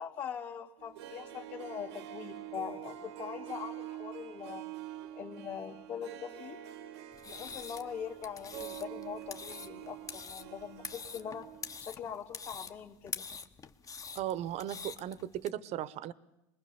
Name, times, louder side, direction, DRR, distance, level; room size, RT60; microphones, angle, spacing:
voice 1, 0.0-4.6 5.1-6.6 7.3-11.5 11.8-13.3, left 8 dB, 60° left, -5 dB, 2.6 m, -42 dB
Harp, 0.8-11.8 12.1-12.2, right 12 dB, 85° right, 1.3 m, -46 dB
sound 1, 7.1-15.5, left 5 dB, 25° left, 1.1 m, -45 dB
voice 2, 14.1-16.1, right 12 dB, 50° right, 18 dB, 1.0 m, -36 dB
23.5 x 21.0 x 7.0 m, 0.91 s
supercardioid pair, 105°, 14 cm